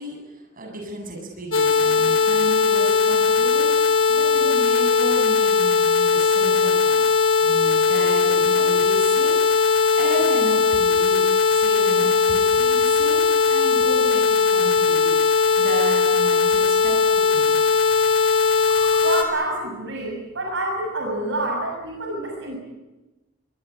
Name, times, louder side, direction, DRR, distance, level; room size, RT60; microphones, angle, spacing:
voice 1, 0.0-7.0 7.4-11.2 11.5-17.6, right 1 dB, 45° right, 2 dB, 7.8 m, -33 dB
sound 1, 1.5-19.2, left 5 dB, 80° left, 4.1 m, -19 dB
voice 2, 18.9-22.6, right 1 dB, 65° right, 1 dB, 6.6 m, -27 dB
23.5 x 22.5 x 8.7 m, 1.1 s
head